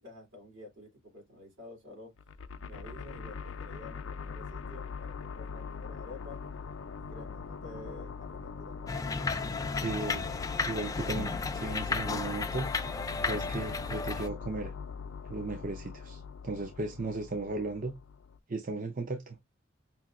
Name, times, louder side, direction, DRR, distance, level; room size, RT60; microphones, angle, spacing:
voice 1, 0.0-2.1 2.7-6.5 7.0-9.1, left 2 dB, 75° right, 2.9 m, -50 dB
sound 1, 2.2-18.4, left 5 dB, 75° left, 0.5 m, -41 dB
sound 2, 8.9-14.3, left 4 dB, 20° left, 0.4 m, -34 dB
voice 2, 9.7-10.3 10.6-12.7 13.3-14.7 15.2-17.9 18.5-19.4, right 3 dB, 45° right, 0.7 m, -36 dB
5.5 x 2.8 x 2.4 m
head